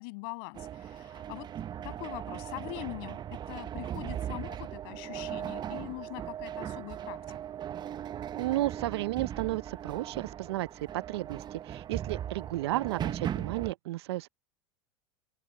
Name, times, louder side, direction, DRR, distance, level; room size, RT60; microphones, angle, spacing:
voice 1, 0.0-1.5 1.8-7.4, left 30 dB, 65° left, 7.0 m, -42 dB
sound 1, 0.5-13.7, right 10 dB, 30° right, 0.8 m, -38 dB
voice 2, 8.4-14.3, right 17 dB, 75° right, 0.6 m, -33 dB
hypercardioid pair, 100°, 14 cm